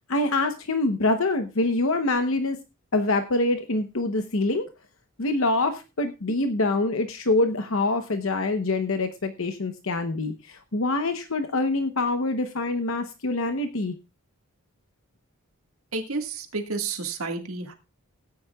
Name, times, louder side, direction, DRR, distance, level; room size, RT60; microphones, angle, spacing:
voice 1, 0.1-2.6 2.9-4.7 5.2-14.0, left 2 dB, 65° left, 7 dB, 0.9 m, -25 dB
voice 2, 15.9-17.7, right 3 dB, 75° right, 5 dB, 1.7 m, -31 dB
17.5 x 9.6 x 2.3 m, 0.27 s
head